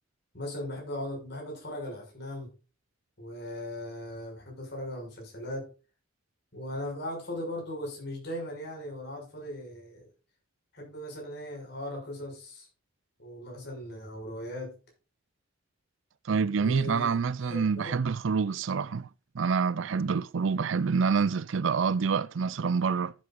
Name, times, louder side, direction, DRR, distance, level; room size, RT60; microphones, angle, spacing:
voice 1, 0.3-2.5 3.2-5.7 6.5-10.1 10.7-12.7 13.2-14.8 16.6-17.2 17.4-18.0, left 1 dB, 50° left, 6.3 m, -38 dB
voice 2, 16.3-19.1 19.3-23.1, right 5 dB, 65° right, 0.4 m, -27 dB
14.5 x 8.7 x 2.5 m
head